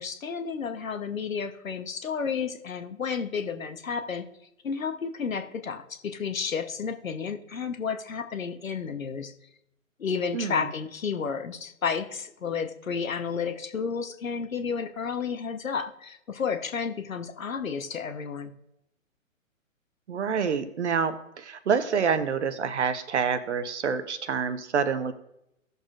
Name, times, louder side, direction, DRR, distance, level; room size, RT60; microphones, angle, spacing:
voice 1, 0.0-4.3 4.6-9.3 10.0-18.5, left 6 dB, 70° left, 9 dB, 1.1 m, -31 dB
voice 2, 10.3-10.7 20.1-25.1, right 6 dB, 55° right, 12 dB, 0.9 m, -27 dB
16.5 x 6.7 x 2.5 m, 0.82 s
figure-of-eight pair, 130°, 41 cm